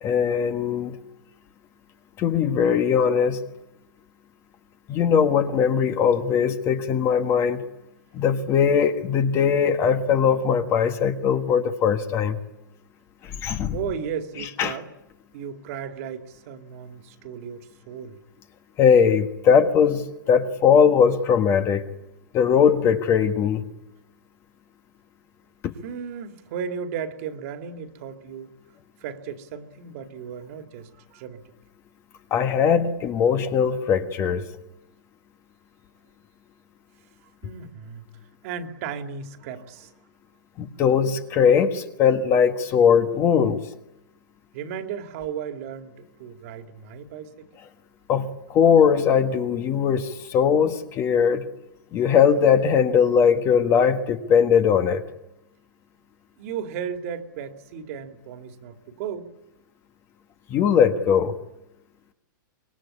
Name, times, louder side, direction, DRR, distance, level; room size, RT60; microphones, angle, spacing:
voice 1, 0.0-1.0 2.2-3.4 4.9-7.6 8.1-12.4 13.2-13.8 14.6-14.7 18.8-21.8 22.3-23.6 25.6-25.7 32.3-34.4 40.6-43.6 48.1-51.5 51.9-55.0 60.5-61.4, left 7 dB, 25° left, 1.5 m, -20 dB
voice 2, 13.7-14.9 15.3-18.2 25.8-28.5 29.0-31.4 37.4-38.0 38.4-39.9 44.5-47.5 56.4-59.3, right 7 dB, 45° right, 2.4 m, -35 dB
25.5 x 22.5 x 9.9 m
hypercardioid pair, 160°, 11 cm